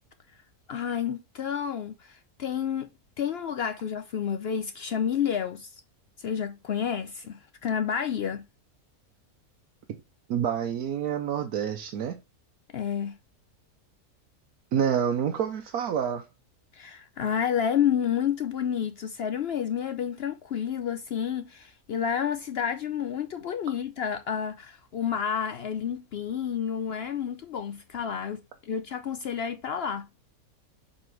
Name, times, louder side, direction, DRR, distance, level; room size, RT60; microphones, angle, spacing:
voice 1, 0.7-2.9 3.2-5.7 6.2-8.5 12.7-13.2 16.7-30.1, left 8 dB, 65° left, 0.6 m, -30 dB
voice 2, 10.3-12.2 14.7-16.2, right 8 dB, 85° right, 1.3 m, -27 dB
6.6 x 4.3 x 4.6 m
omnidirectional pair, 1.6 m